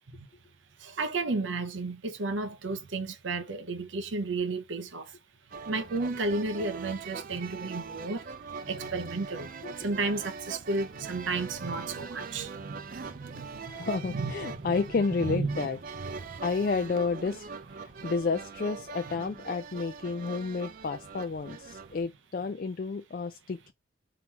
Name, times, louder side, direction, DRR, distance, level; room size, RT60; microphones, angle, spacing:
voice 1, 0.8-5.1 5.7-8.3 8.6-9.5 9.8-13.5 13.8-14.7 15.2-15.7 16.0-16.4, right 3 dB, 80° right, 0.7 m, -33 dB
sound 1, 5.5-22.0, right 5 dB, 45° right, 0.4 m, -42 dB
voice 2, 13.7-15.8 16.4-23.7, left 4 dB, 45° left, 0.4 m, -31 dB
3.7 x 2.9 x 4.4 m
head